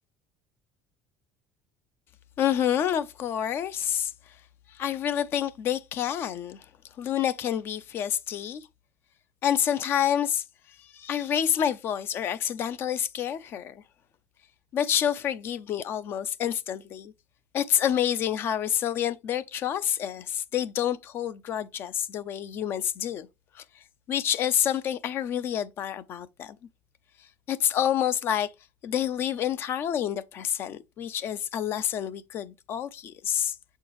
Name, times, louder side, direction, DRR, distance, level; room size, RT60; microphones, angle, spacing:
voice 1, 2.4-4.1 4.7-6.6 7.0-8.7 9.4-10.4 10.8-13.8 14.7-17.1 17.5-23.3 23.5-23.6 24.1-26.6 27.5-28.5 28.8-33.5, left 10 dB, 45° left, 0.5 m, -28 dB
6.9 x 4.5 x 3.0 m
cardioid pair, 135°, 5 cm